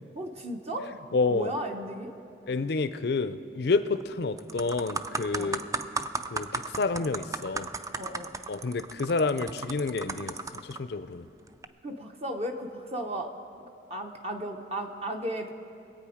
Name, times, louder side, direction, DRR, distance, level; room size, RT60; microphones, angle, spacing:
voice 1, 0.2-0.9 1.3-2.1 5.3-5.6 8.0-8.3 11.8-13.3 13.9-15.5, right 1 dB, 35° right, 3 dB, 0.8 m, -35 dB
voice 2, 1.1-1.5 2.5-5.6 6.3-7.7 8.5-11.3, left 3 dB, 60° left, 12 dB, 0.5 m, -29 dB
sound 1, 3.8-4.0 4.4-10.8 11.5-11.7, right 3 dB, 20° right, 0.4 m, -35 dB
23.0 x 8.7 x 5.0 m, 2.5 s
head